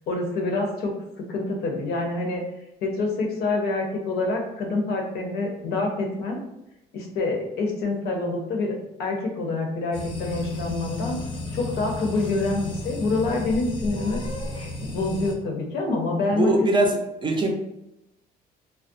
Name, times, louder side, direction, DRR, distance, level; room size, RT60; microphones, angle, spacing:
voice 1, 0.1-0.9 1.3-2.4 2.8-6.4 6.9-11.2 11.5-14.2 14.8-16.5, left 3 dB, 75° left, 2 dB, 0.6 m, -26 dB
sound 1, 9.9-15.3, left 2 dB, 30° left, 0.6 m, -33 dB
voice 2, 16.3-17.5, right 1 dB, 30° right, 1 dB, 0.5 m, -22 dB
2.3 x 2.1 x 2.6 m, 0.89 s
cardioid pair, 110°, 17 cm